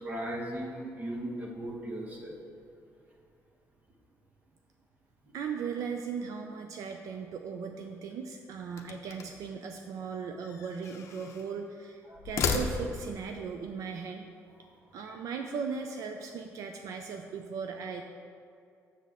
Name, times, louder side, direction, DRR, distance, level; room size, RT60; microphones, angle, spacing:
voice 1, 0.0-2.3 12.1-12.2, right 1 dB, 25° right, -1 dB, 1.1 m, -37 dB
voice 2, 5.3-14.3 14.9-18.0, right 5 dB, 65° right, 4 dB, 0.4 m, -38 dB
sound 1, 8.7-9.5 10.4-11.5 12.1-13.2, left 5 dB, 55° left, 0.6 m, -34 dB
7.4 x 6.8 x 3.6 m, 2.5 s
cardioid pair, 145°, 6 cm